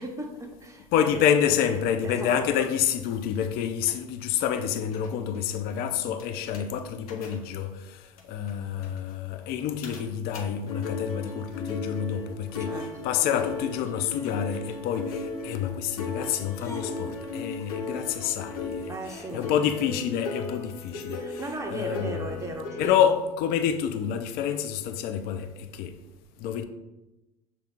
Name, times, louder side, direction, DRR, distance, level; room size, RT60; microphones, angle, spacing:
voice 1, 0.0-1.3 2.0-2.7 12.6-12.9 18.9-19.5 21.2-23.2, right 1 dB, 15° right, 0.8 m, -36 dB
voice 2, 0.9-21.4 21.7-22.2 22.8-26.0 26.4-26.6, left 9 dB, 55° left, 0.5 m, -28 dB
sound 1, 3.9-4.0 4.5-4.6 4.9-5.1 5.3-5.5 6.2-6.6 7.1-7.4 8.2-8.3 8.5-8.6 8.8-9.0 9.8-10.0 10.3-10.4 10.7-22.9, left 3 dB, 85° left, 0.8 m, -36 dB
sound 2, 16.3-21.3, left 1 dB, 15° left, 0.8 m, -51 dB
6.1 x 2.3 x 3.6 m
hypercardioid pair, 75°, 19 cm